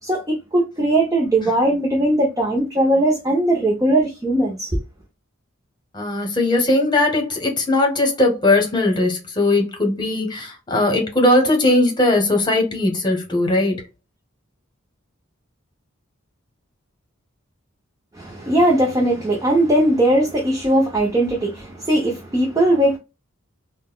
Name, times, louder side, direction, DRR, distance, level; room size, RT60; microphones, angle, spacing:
voice 1, 0.0-4.8 18.1-23.0, right 1 dB, 15° right, 0.7 m, -19 dB
voice 2, 5.9-13.8, left 2 dB, 20° left, 1.1 m, -19 dB
3.9 x 2.2 x 2.3 m
head